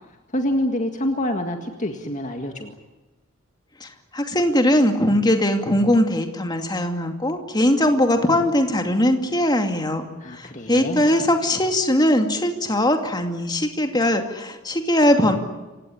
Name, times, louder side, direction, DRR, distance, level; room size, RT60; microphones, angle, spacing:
voice 1, 0.3-2.8 10.2-11.1, left 1 dB, 35° left, 4 dB, 1.9 m, -26 dB
voice 2, 3.8-10.1 10.4-15.4, left 1 dB, 20° left, 5 dB, 2.5 m, -20 dB
28.0 x 17.0 x 10.0 m, 1.2 s
head